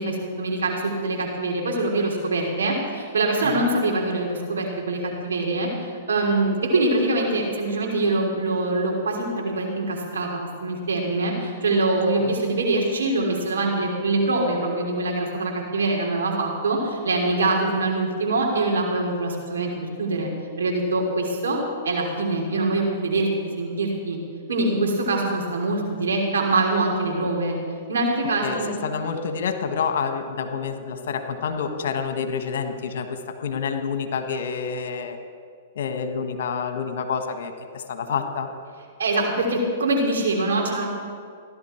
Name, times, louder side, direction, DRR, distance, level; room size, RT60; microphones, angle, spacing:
voice 1, 0.0-20.3 20.6-21.6 21.8-23.3 23.6-24.2 24.5-27.5 27.9-28.7 39.0-40.9, right 2 dB, 85° right, -1 dB, 3.1 m, -24 dB
voice 2, 28.4-35.2 35.7-38.5, left 6 dB, 65° left, 7 dB, 1.3 m, -28 dB
15.5 x 11.5 x 4.4 m, 2.1 s
hypercardioid pair, 120°, 0 cm